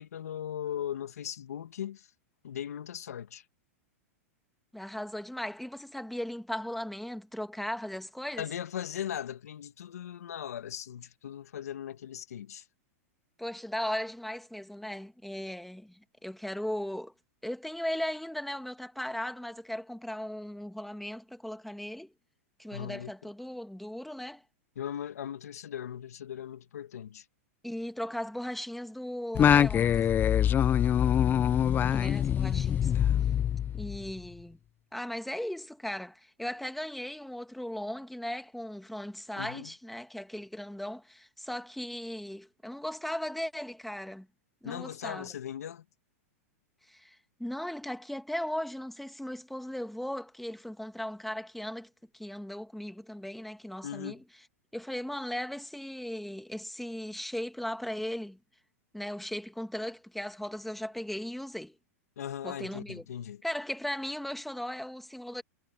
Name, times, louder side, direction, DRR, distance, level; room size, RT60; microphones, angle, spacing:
voice 1, 0.0-2.1 2.4-3.4 8.4-12.6 22.7-23.1 24.8-27.3 39.4-39.7 44.6-45.8 53.8-54.2 62.2-63.4, left 10 dB, 80° left, 2.3 m, -38 dB
voice 2, 4.7-8.4 13.4-17.1 17.4-22.1 22.6-24.4 27.6-30.1 31.8-32.9 33.7-34.6 34.9-44.3 44.6-45.3 46.9-54.2 54.7-58.4 58.9-61.7 62.4-63.0 63.4-65.4, left 1 dB, ahead, 2.1 m, -37 dB
Singing, 29.3-34.1, left 9 dB, 25° left, 0.7 m, -24 dB
hypercardioid pair, 120°, 8 cm